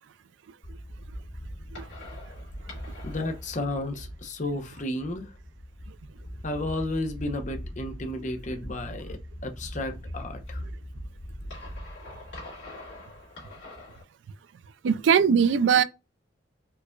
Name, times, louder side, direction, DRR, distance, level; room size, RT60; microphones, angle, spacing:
sound 1, 0.6-14.0, equal, 70° left, 2.1 m, -41 dB
voice 1, 3.0-5.3 6.4-10.6, left 1 dB, 40° left, 0.6 m, -32 dB
voice 2, 14.8-15.8, right 7 dB, 75° right, 0.3 m, -20 dB
4.5 x 2.4 x 2.2 m
head